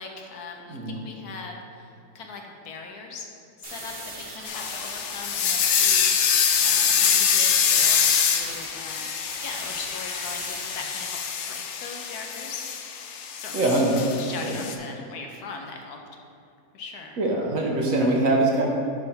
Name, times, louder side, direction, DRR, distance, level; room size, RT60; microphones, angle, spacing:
voice 1, 0.0-3.3 3.6-6.1 6.6-9.1 9.4-12.6 13.4-13.7 14.2-16.0 16.7-17.2, left 4 dB, 70° left, 2 dB, 1.1 m, -40 dB
sound 1, 3.6-6.1 6.5-6.9 7.4-11.1, right 2 dB, 35° right, 1.4 m, -41 dB
sound 2, 4.5-14.8, left 7 dB, 90° left, 0.6 m, -25 dB
voice 2, 13.5-14.0 14.4-14.6 17.2-18.6, right 2 dB, 55° right, -1 dB, 1.1 m, -23 dB
7.9 x 3.6 x 5.6 m, 2.5 s
omnidirectional pair, 1.9 m